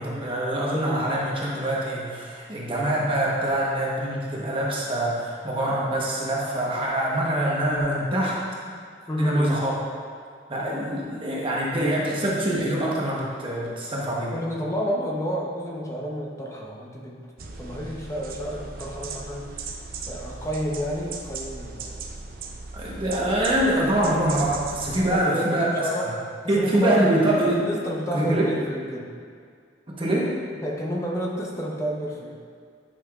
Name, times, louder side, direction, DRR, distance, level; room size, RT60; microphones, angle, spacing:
voice 1, 0.0-8.4 9.2-9.7 10.5-14.3 22.7-26.1 26.5-27.6 28.1-28.5 29.9-30.3, right 1 dB, 30° right, -5 dB, 1.0 m, -24 dB
voice 2, 9.1-9.6 14.3-17.3 17.6-19.7 20.1-22.0 25.1-26.1 26.4-29.1 30.6-32.4, equal, 15° left, -2 dB, 0.8 m, -30 dB
sound 1, 17.4-25.2, right 4 dB, 55° right, 0.6 m, -37 dB
10.0 x 5.7 x 2.4 m, 2.1 s
head